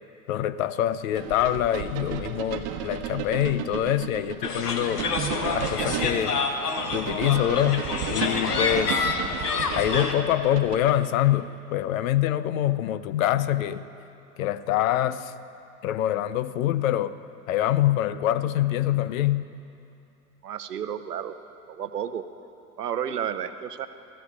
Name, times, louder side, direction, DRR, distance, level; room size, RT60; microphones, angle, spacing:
voice 1, 0.3-5.0 5.5-6.4 6.9-7.9 8.1-9.1 9.7-13.8 14.4-15.3 15.8-17.1 17.5-19.5, left 12 dB, 60° left, 15 dB, 0.7 m, -25 dB
sound 1, 1.1-11.1, right 9 dB, 50° right, 1.1 m, -34 dB
sound 2, 4.4-10.1, left 4 dB, 85° left, 1.0 m, -28 dB
voice 2, 20.4-21.4 21.7-22.2 22.8-23.9, right 9 dB, 85° right, 11 dB, 0.7 m, -31 dB
24.0 x 14.5 x 2.4 m, 2.7 s
figure-of-eight pair, 85°, 46 cm